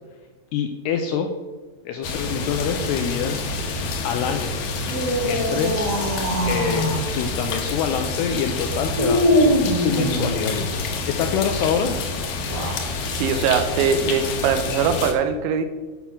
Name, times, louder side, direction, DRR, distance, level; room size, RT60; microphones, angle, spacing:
voice 1, 0.5-1.3 1.9-3.4 4.0-4.6 5.2-5.8 6.5-10.5 11.1-12.0, left 7 dB, 90° left, 5 dB, 2.4 m, -25 dB
sound 1, 2.0-15.1, left 3 dB, 70° left, 2.1 m, -28 dB
sound 2, 4.8-7.1 8.9-10.7 12.3-12.9, equal, 45° right, 1.3 m, -22 dB
voice 2, 13.1-15.7, right 6 dB, 80° right, 8 dB, 2.9 m, -21 dB
9.1 x 5.7 x 5.9 m, 1.3 s
omnidirectional pair, 5.4 m